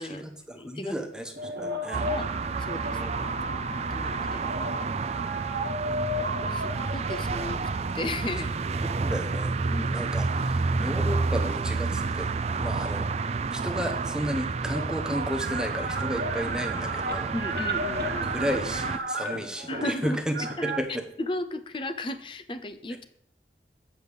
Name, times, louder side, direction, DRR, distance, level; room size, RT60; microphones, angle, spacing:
voice 1, 0.0-2.0 2.9-3.3 5.8-6.6 8.8-9.6 9.9-13.1 13.5-17.3 18.2-20.4 20.6-21.0, equal, 5° right, 4 dB, 0.9 m, -33 dB
voice 2, 0.5-1.0 1.6-2.3 2.6-3.0 3.3-3.7 3.9-4.4 6.3-9.0 9.7-10.1 17.3-18.3 19.7-20.8 21.2-23.0, left 2 dB, 30° left, 11 dB, 0.5 m, -35 dB
sound 1, 1.3-10.2 10.8-12.5 13.7-13.8 14.0-20.8, right 1 dB, 60° right, 1.2 m, -35 dB
sound 2, 1.9-19.0, right 4 dB, 35° right, 0.3 m, -30 dB
8.1 x 5.4 x 6.9 m, 0.67 s
head